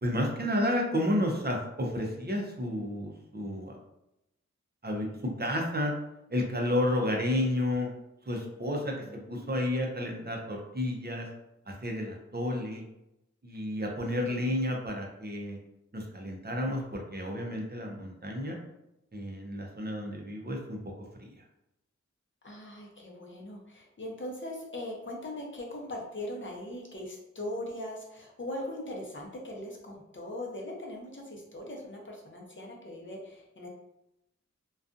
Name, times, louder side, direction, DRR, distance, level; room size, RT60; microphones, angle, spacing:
voice 1, 0.0-3.7 4.8-5.9 6.3-7.9 8.3-8.9 9.3-11.3 11.8-12.8 13.4-15.6 15.9-18.6 19.1-20.8, left 1 dB, 35° right, 0 dB, 0.6 m, -31 dB
voice 2, 9.0-9.6 14.2-14.6 22.4-33.7, left 1 dB, 40° left, -1 dB, 0.7 m, -40 dB
2.5 x 2.3 x 2.5 m, 0.88 s
wide cardioid pair, 55°, 29 cm